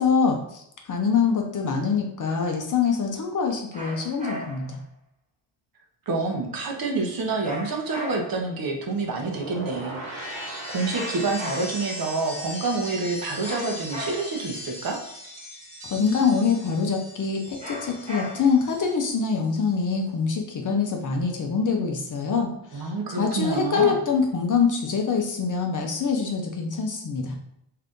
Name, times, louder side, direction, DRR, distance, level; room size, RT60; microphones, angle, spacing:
voice 1, 0.0-4.8 15.8-27.4, left 5 dB, 40° left, 2 dB, 0.6 m, -24 dB
sound 1, 3.7-4.8 7.4-8.5 10.9-12.0 13.4-14.5 17.6-18.7, left 1 dB, 15° right, 1.1 m, -37 dB
voice 2, 6.1-15.0 22.7-24.0, right 3 dB, 45° right, 1 dB, 0.8 m, -28 dB
sound 2, 9.1-19.2 19.4-19.9, equal, 80° right, 1.2 m, -38 dB
2.7 x 2.4 x 3.5 m, 0.77 s
cardioid pair, 80°, 48 cm